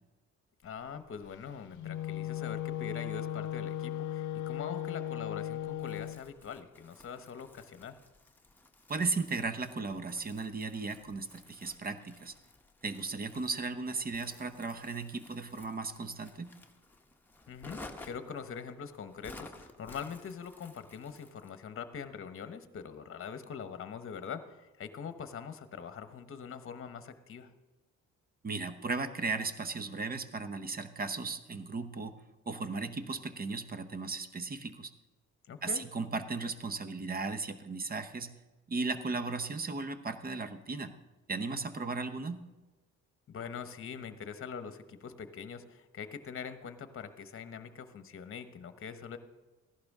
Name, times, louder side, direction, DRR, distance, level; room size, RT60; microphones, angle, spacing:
voice 1, 0.6-8.0 17.5-27.5 35.5-35.8 43.3-49.2, left 6 dB, 45° left, 10 dB, 1.0 m, -43 dB
Wind instrument woodwind instrument, 1.7-6.2, left 12 dB, 75° left, 0.5 m, -37 dB
Crumpling crinkling, 5.8-21.6, left 2 dB, 5° left, 1.2 m, -54 dB
voice 2, 8.9-12.3 12.8-16.5 28.4-32.1 32.5-34.9 35.6-38.3 38.7-40.9 41.3-42.4, right 3 dB, 30° right, 11 dB, 0.9 m, -36 dB
15.0 x 11.5 x 3.7 m, 1.2 s
cardioid pair, 90°, 30 cm